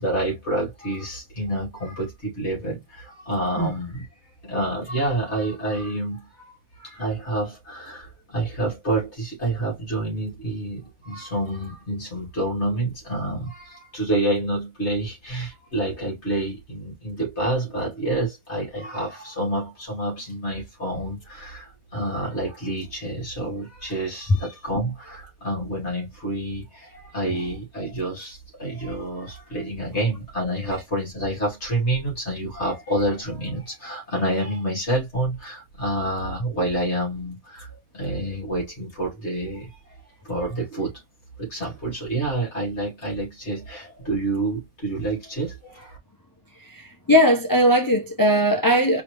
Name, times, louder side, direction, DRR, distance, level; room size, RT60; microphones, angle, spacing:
voice 1, 0.0-4.1 4.4-6.3 6.8-37.7 37.9-39.7 40.2-40.9 41.4-46.0, right 1 dB, 50° left, 2.7 m, -28 dB
voice 2, 46.6-49.0, equal, 25° left, 0.5 m, -19 dB
4.8 x 3.0 x 3.2 m
omnidirectional pair, 1.5 m